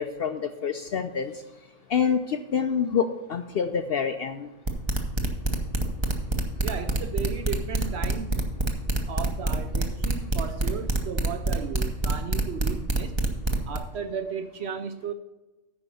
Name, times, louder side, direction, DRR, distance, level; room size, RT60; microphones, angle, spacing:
voice 1, 0.0-1.3 1.9-4.5, left 6 dB, 65° left, 8 dB, 0.6 m, -27 dB
sound 1, 4.7-13.8, right 2 dB, 25° right, 0.8 m, -25 dB
voice 2, 6.6-8.4 9.1-13.2 13.7-15.1, right 7 dB, 65° right, 8 dB, 0.7 m, -35 dB
9.4 x 5.2 x 6.8 m, 1.1 s
omnidirectional pair, 1.4 m